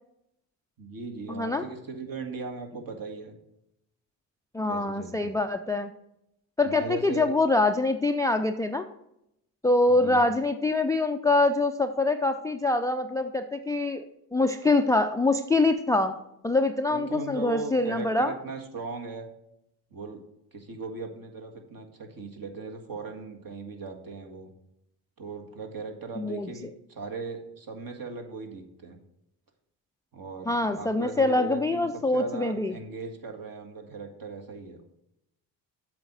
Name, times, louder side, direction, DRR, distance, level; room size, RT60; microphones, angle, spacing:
voice 1, 0.8-3.3 4.6-5.4 6.6-7.3 9.9-10.2 16.9-19.3 19.9-20.2 20.5-24.5 25.2-29.0 30.1-30.5 30.7-31.9 32.1-35.0, right 4 dB, 45° right, 3 dB, 1.8 m, -38 dB
voice 2, 1.3-1.6 4.5-5.9 6.6-8.8 9.6-14.1 14.3-16.2 16.4-18.3 26.2-26.5 30.5-32.7, left 2 dB, 5° left, 8 dB, 0.4 m, -24 dB
7.8 x 5.0 x 6.8 m, 0.80 s
hypercardioid pair, 50°, 48 cm